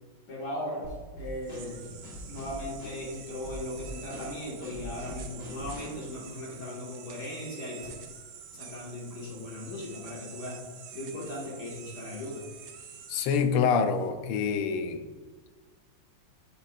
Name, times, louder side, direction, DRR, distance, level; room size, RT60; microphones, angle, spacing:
voice 1, 0.3-0.9 1.2-1.8 2.3-7.9 8.5-10.6 10.9-12.4, left 1 dB, 50° left, -4 dB, 2.1 m, -38 dB
Drum kit / Snare drum, 0.8-6.0, right 1 dB, 35° left, 2.3 m, -44 dB
sound 1, 1.3-14.1, right 7 dB, 75° right, 1.5 m, -48 dB
voice 2, 13.1-15.0, left 6 dB, 90° left, 9 dB, 1.6 m, -26 dB
9.3 x 6.9 x 2.5 m, 1.4 s
omnidirectional pair, 2.4 m